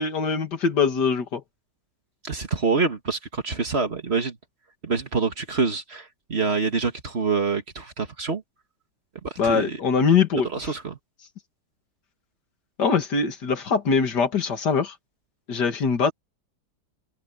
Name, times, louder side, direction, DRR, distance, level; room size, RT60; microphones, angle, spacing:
voice 1, 0.0-1.4 9.4-10.7 12.8-14.9 15.5-16.1, left 5 dB, 80° left, 2.7 m, -22 dB
voice 2, 2.2-4.3 4.8-8.4 9.2-9.8 10.5-11.0, right 4 dB, 40° right, 1.8 m, -26 dB
open air
omnidirectional pair, 1.8 m